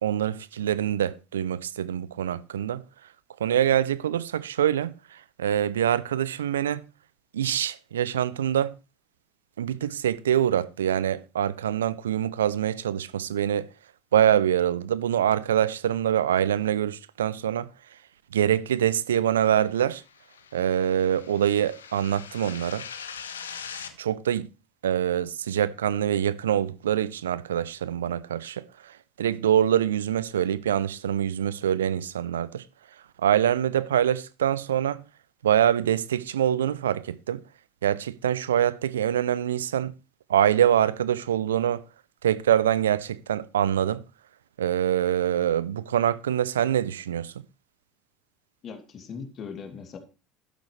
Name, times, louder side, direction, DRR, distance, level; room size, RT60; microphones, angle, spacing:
voice 1, 0.0-2.8 3.4-6.9 7.3-8.8 9.6-13.7 14.1-17.7 18.3-20.0 20.5-22.8 24.0-24.5 24.8-32.6 33.2-35.0 35.4-37.4 37.8-39.9 40.3-41.8 42.2-44.0 44.6-47.3, right 10 dB, 80° right, 0.5 m, -25 dB
sound 1, 19.5-23.9, left 7 dB, 85° left, 0.9 m, -42 dB
voice 2, 48.6-50.0, left 6 dB, 45° left, 2.6 m, -39 dB
12.0 x 10.0 x 3.3 m
hypercardioid pair, 70°, 0 cm